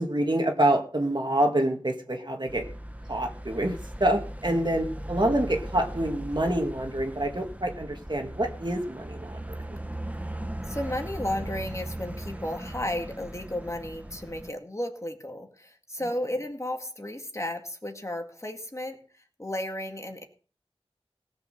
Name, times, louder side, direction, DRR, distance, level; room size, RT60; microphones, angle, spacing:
voice 1, 0.0-2.7 3.1-9.8, right 1 dB, 45° right, 4 dB, 2.0 m, -27 dB
sound 1, 2.5-14.5, right 1 dB, 15° right, 1.1 m, -38 dB
voice 2, 10.7-20.2, left 1 dB, 25° left, 4 dB, 2.1 m, -33 dB
17.5 x 6.7 x 6.6 m, 0.40 s
wide cardioid pair, 55°, 11 cm